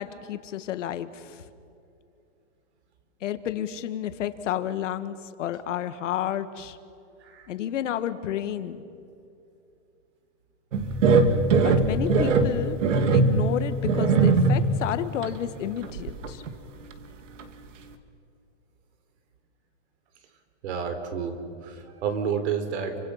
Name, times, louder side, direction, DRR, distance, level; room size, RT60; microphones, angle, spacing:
voice 1, 0.0-1.4 3.2-6.8 7.5-8.8 11.6-12.8 13.1-16.4, left 10 dB, 80° left, 11 dB, 1.8 m, -31 dB
sound 1, 10.7-14.9 15.2-15.4 15.8-16.6 16.9-17.0 17.4-17.5, right 3 dB, 85° right, 2.4 m, -21 dB
voice 2, 20.6-23.0, right 6 dB, 65° right, 8 dB, 3.9 m, -30 dB
30.0 x 25.5 x 5.8 m, 2.6 s
supercardioid pair, 165°, 37 cm